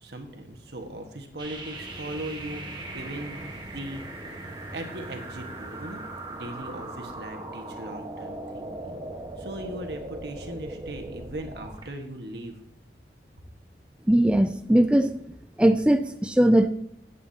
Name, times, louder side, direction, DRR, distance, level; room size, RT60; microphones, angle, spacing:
voice 1, 0.0-4.0 4.4-6.0 6.3-9.0 9.4-12.6, right 1 dB, 70° right, 4 dB, 1.5 m, -39 dB
sound 1, 1.4-11.9, right 2 dB, 25° right, 1.3 m, -39 dB
sound 2, 1.7-7.7, right 1 dB, 15° left, 3.5 m, -46 dB
voice 2, 14.1-15.2 15.6-16.7, right 1 dB, 5° right, 8 dB, 0.3 m, -20 dB
15.5 x 8.4 x 2.9 m, 0.78 s
head